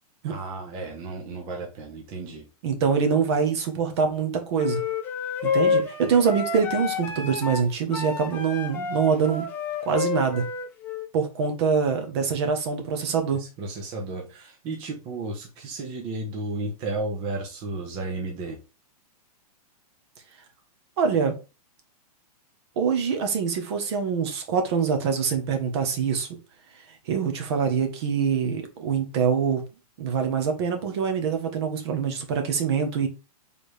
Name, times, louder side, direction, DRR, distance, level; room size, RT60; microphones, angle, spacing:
voice 1, 0.3-2.4 13.4-18.6, right 2 dB, 25° right, 0.8 m, -33 dB
voice 2, 2.6-4.8 5.4-9.5 9.8-10.4 11.1-13.4 21.0-21.3 22.8-26.3 27.1-29.6 30.0-33.1, right 6 dB, 45° right, 1.0 m, -24 dB
sound 1, 4.6-11.1, left 5 dB, 10° left, 0.4 m, -29 dB
4.5 x 3.5 x 3.2 m
hypercardioid pair, 165°, 20 cm